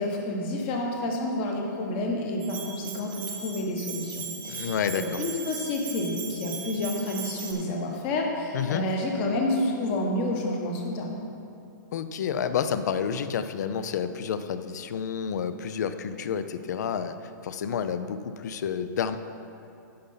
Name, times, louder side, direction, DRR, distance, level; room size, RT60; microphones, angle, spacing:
voice 1, 0.0-11.1, left 1 dB, 30° left, 1 dB, 1.2 m, -29 dB
Bell, 2.4-7.5, right 6 dB, 15° right, 0.8 m, -38 dB
voice 2, 4.5-5.0 8.5-8.8 11.9-17.2 17.4-19.2, left 7 dB, 60° left, 11 dB, 0.5 m, -29 dB
10.5 x 5.5 x 5.5 m, 2.6 s
hypercardioid pair, 165°, 11 cm